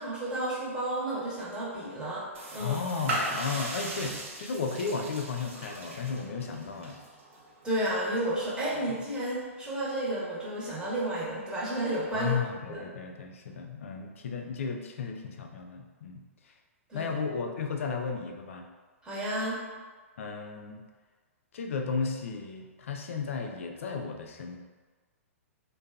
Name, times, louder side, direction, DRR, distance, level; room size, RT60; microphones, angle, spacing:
voice 1, 0.0-2.2 2.5-2.8 7.6-12.3 12.7-12.8 16.9-17.1 19.0-19.6, right 1 dB, 10° right, -8 dB, 0.8 m, -32 dB
sound 1, 2.3-9.0, right 1 dB, 60° right, 0.5 m, -38 dB
voice 2, 2.6-7.0 12.1-16.5 16.9-18.7 20.2-20.8 21.5-24.6, left 5 dB, 65° left, 3 dB, 0.3 m, -34 dB
2.7 x 2.2 x 2.4 m, 1.4 s
figure-of-eight pair, 110°, 8 cm